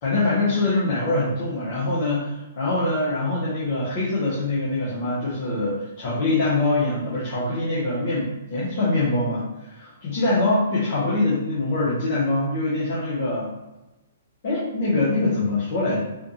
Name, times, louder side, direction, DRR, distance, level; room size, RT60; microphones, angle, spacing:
voice 1, 0.0-13.5 14.4-16.0, left 2 dB, 50° left, -8 dB, 1.3 m, -24 dB
4.2 x 2.7 x 3.2 m, 1.0 s
figure-of-eight pair, 120°, 0 cm